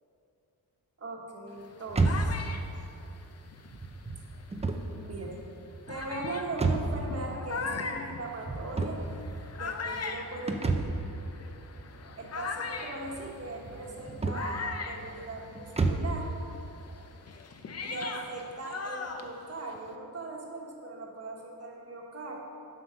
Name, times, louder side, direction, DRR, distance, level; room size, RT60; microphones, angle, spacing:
voice 1, 1.0-2.4 4.9-5.4 5.9-9.0 9.6-11.1 12.2-16.3 17.8-22.4, right 2 dB, 40° right, -1 dB, 1.2 m, -39 dB
sound 1, 1.6-4.6 5.3-5.4 5.9-15.9 16.2-19.9, left 4 dB, 40° left, 0.6 m, -40 dB
sound 2, 1.9-16.2, right 3 dB, 15° right, 0.4 m, -33 dB
7.6 x 6.9 x 5.6 m, 2.8 s
wide cardioid pair, 155°, 39 cm